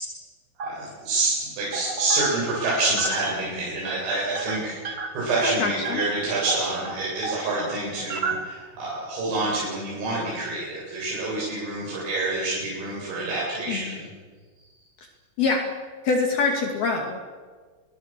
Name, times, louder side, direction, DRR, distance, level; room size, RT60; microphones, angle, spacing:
sound 1, 0.6-1.2 1.7-2.6 2.8-3.4 3.7-3.9 4.3-7.4 8.0-8.9, right 4 dB, 30° right, 3.0 m, -32 dB
voice 1, 0.6-14.1, right 2 dB, 85° right, -5 dB, 10.5 m, -27 dB
voice 2, 5.4-6.0 13.7-14.0 15.4-15.7 16.0-17.3, left 4 dB, 55° left, 2 dB, 3.8 m, -25 dB
29.5 x 23.0 x 7.6 m, 1.5 s
omnidirectional pair, 5.8 m